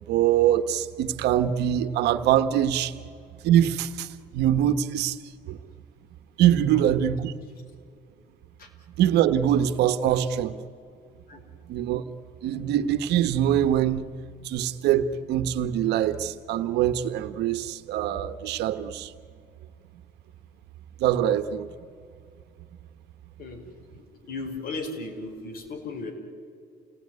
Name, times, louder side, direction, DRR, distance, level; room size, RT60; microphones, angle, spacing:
voice 1, 0.1-2.9 3.4-5.2 5.5-5.6 6.4-7.3 9.0-10.5 11.7-12.0 12.4-14.1 14.4-19.1 21.0-21.7, right 10 dB, 80° right, 10 dB, 1.3 m, -23 dB
voice 2, 23.9-26.1, left 3 dB, 60° left, 5 dB, 5.2 m, -37 dB
29.0 x 19.0 x 9.6 m, 2.4 s
cardioid pair, 110°, 17 cm